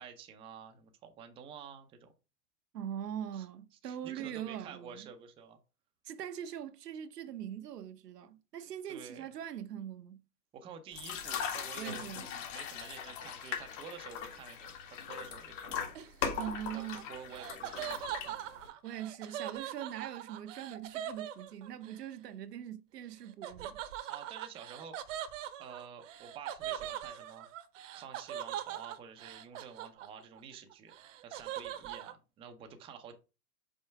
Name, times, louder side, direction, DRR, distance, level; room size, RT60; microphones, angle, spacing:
voice 1, 0.0-2.1 3.3-3.5 3.8-5.6 8.9-9.3 10.5-16.0 16.7-16.8 17.1-18.4 24.1-25.3 25.6-27.5 27.9-30.9 31.2-33.2, right 7 dB, 10° right, 0.5 m, -50 dB
voice 2, 2.7-5.1 6.0-10.2 11.8-12.3 16.4-17.0 18.8-23.8, right 10 dB, 80° right, 0.8 m, -42 dB
sound 1, 10.9-18.7, left 7 dB, 50° left, 1.8 m, -40 dB
Laughter, 15.9-22.0 23.4-30.4 30.7-32.1, right 11 dB, 55° right, 0.9 m, -42 dB
5.5 x 4.3 x 4.6 m
hypercardioid pair, 125°, 47 cm